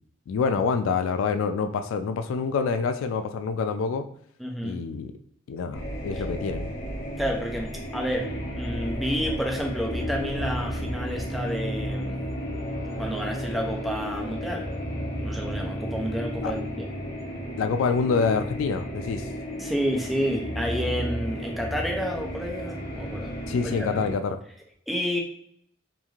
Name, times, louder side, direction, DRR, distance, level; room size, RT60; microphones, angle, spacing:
voice 1, 0.3-4.0 4.6-5.1 5.5-6.7 16.4-16.5 17.6-19.2 23.5-24.4, left 5 dB, 85° left, 9 dB, 0.3 m, -26 dB
voice 2, 4.4-4.8 6.1-6.2 7.2-8.3 8.5-12.2 13.0-14.6 15.2-16.9 19.6-23.9 24.9-25.2, equal, ahead, -1 dB, 0.5 m, -30 dB
sound 1, 5.7-24.2, equal, 70° left, 0.9 m, -33 dB
3.0 x 2.5 x 2.4 m, 0.67 s
head